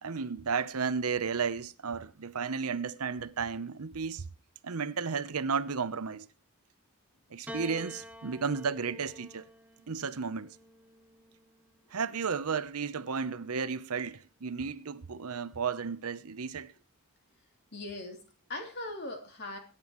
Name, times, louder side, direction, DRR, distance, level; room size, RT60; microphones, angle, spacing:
voice 1, 0.0-4.3 4.6-6.3 7.3-9.4 9.9-10.6 11.9-16.7, right 5 dB, 80° right, 0.8 m, -33 dB
Piano, 7.5-12.0 13.0-13.7, left 1 dB, 5° right, 0.7 m, -49 dB
voice 2, 17.7-19.6, left 2 dB, 45° left, 3.2 m, -40 dB
22.0 x 10.0 x 3.1 m
head